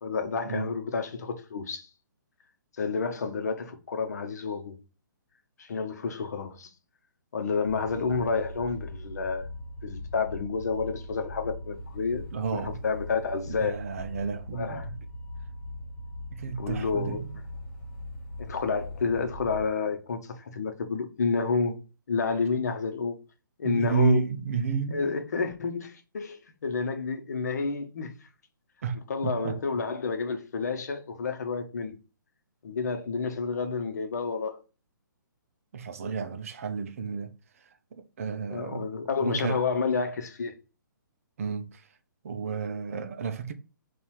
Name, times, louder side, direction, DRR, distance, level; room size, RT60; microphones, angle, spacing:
voice 1, 0.0-1.9 2.8-4.8 5.6-6.7 7.3-9.5 9.8-12.3 12.5-13.8 14.5-14.9 16.6-17.2 18.4-21.8 22.1-23.2 23.6-24.2 24.9-28.1 29.1-32.0 32.6-34.6 38.5-40.5, left 4 dB, 55° left, 0.8 m, -30 dB
sound 1, 7.6-19.7, left 1 dB, 25° left, 1.5 m, -40 dB
voice 2, 12.3-12.8 13.5-15.0 16.3-17.4 23.6-25.1 28.8-29.6 35.7-38.9 39.2-39.6 41.4-41.9 42.2-43.5, right 5 dB, 45° right, 0.5 m, -32 dB
4.0 x 2.4 x 4.6 m
figure-of-eight pair, 130°, 11 cm